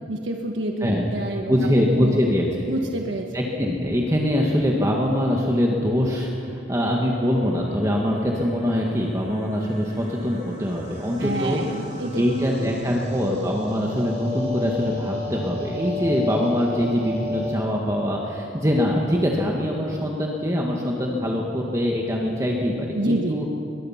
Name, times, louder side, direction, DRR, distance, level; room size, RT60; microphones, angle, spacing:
voice 1, 0.1-1.6 1.9-2.2 2.7-3.3 11.2-12.2 12.6-12.7 22.9-23.4, right 1 dB, 75° right, 2 dB, 1.4 m, -28 dB
voice 2, 1.5-2.5 3.3-11.6 12.1-23.4, equal, 15° right, -1 dB, 1.6 m, -23 dB
sound 1, 6.4-17.6, left 2 dB, 40° right, 3.1 m, -34 dB
22.0 x 21.0 x 5.8 m, 2.7 s
head